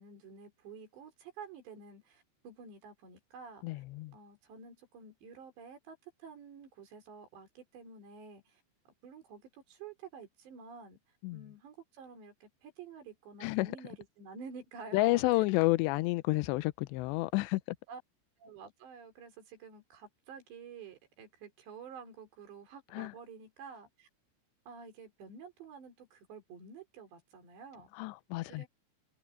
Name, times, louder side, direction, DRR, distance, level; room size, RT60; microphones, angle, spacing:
voice 1, 0.0-3.8 4.1-11.0 11.3-15.4 17.9-18.0 18.4-24.1 24.7-27.9 28.5-28.7, right 5 dB, 60° right, 6.3 m, -50 dB
voice 2, 3.6-4.1 11.2-11.4 13.4-13.7 14.9-17.6 22.9-23.1 28.0-28.7, left 20 dB, 90° left, 2.5 m, -30 dB
omnidirectional pair, 5.7 m